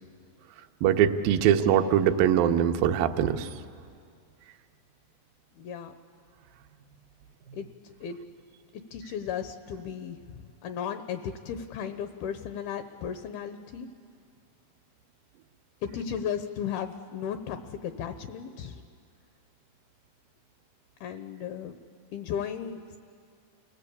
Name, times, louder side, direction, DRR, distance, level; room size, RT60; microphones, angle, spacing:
voice 1, 0.8-3.5, right 9 dB, 75° right, 6 dB, 2.1 m, -22 dB
voice 2, 5.6-5.9 7.5-7.7 8.0-8.2 8.9-13.9 15.8-18.8 21.0-21.8 22.1-23.0, left 8 dB, 75° left, 9 dB, 2.3 m, -35 dB
29.5 x 19.5 x 8.4 m, 2.3 s
omnidirectional pair, 5.1 m